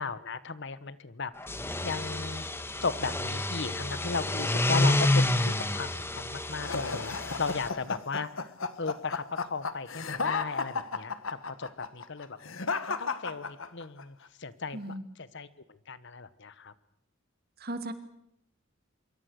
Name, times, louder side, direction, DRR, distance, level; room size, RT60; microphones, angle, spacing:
voice 1, 0.0-1.3 1.8-2.5 2.8-8.4 8.8-11.2 11.4-12.4 12.8-15.5 15.9-16.7, left 4 dB, 60° left, 15 dB, 1.2 m, -36 dB
sound 1, 1.4-7.7, left 1 dB, 10° left, 1.3 m, -29 dB
sound 2, 6.6-14.0, left 4 dB, 80° left, 1.6 m, -34 dB
voice 2, 14.7-15.1 17.6-17.9, right 1 dB, 50° right, 8 dB, 2.5 m, -36 dB
25.5 x 23.5 x 6.5 m, 0.79 s
head